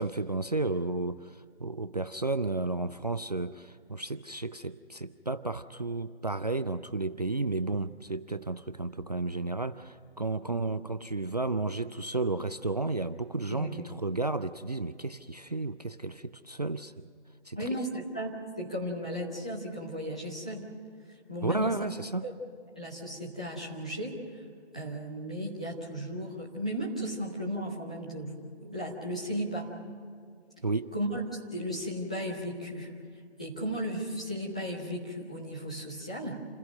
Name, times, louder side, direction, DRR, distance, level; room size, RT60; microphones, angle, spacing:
voice 1, 0.0-17.1 17.5-17.7 21.4-22.3 30.6-30.9, right 2 dB, 40° right, 11 dB, 0.4 m, -32 dB
voice 2, 17.5-20.6 21.3-21.7 22.2-22.4 22.8-24.4 24.7-29.7 30.9-31.2 31.5-32.9 33.4-36.4, equal, 5° left, -6 dB, 0.6 m, -35 dB
28.0 x 16.5 x 6.5 m, 2.3 s
figure-of-eight pair, 150°, 34 cm